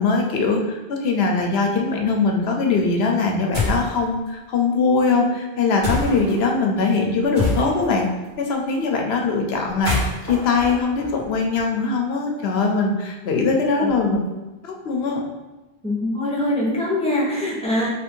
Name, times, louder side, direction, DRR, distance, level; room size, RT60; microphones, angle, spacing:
voice 1, 0.0-8.1 8.4-14.2 14.6-15.2, left 4 dB, 75° left, 2 dB, 0.9 m, -21 dB
sound 1, 3.5-3.9 5.8-6.3 7.3-8.0 9.7-11.6, left 2 dB, 50° right, 1.6 m, -25 dB
voice 2, 13.8-14.2 15.8-17.9, left 1 dB, 5° left, -7 dB, 0.9 m, -23 dB
3.0 x 2.6 x 4.4 m, 1.1 s
omnidirectional pair, 1.1 m